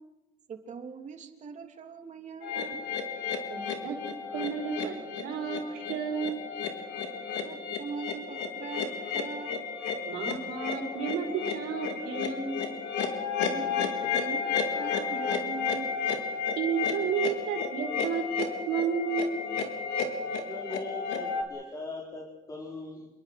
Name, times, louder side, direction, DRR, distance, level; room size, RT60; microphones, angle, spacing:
voice 1, 0.5-2.8 7.4-9.6 13.4-15.9 16.1-16.2, right 6 dB, 45° right, 5 dB, 3.0 m, -42 dB
sound 1, 2.4-21.4, left 6 dB, 80° left, 3.9 m, -32 dB
voice 2, 3.5-4.0 4.3-6.4 10.0-12.6 16.6-18.2 18.7-19.4, right 7 dB, 90° right, 2 dB, 5.0 m, -32 dB
voice 3, 20.3-23.1, left 2 dB, 20° left, -2 dB, 4.7 m, -40 dB
28.0 x 22.5 x 6.0 m, 0.99 s
cardioid pair, 110°, 17 cm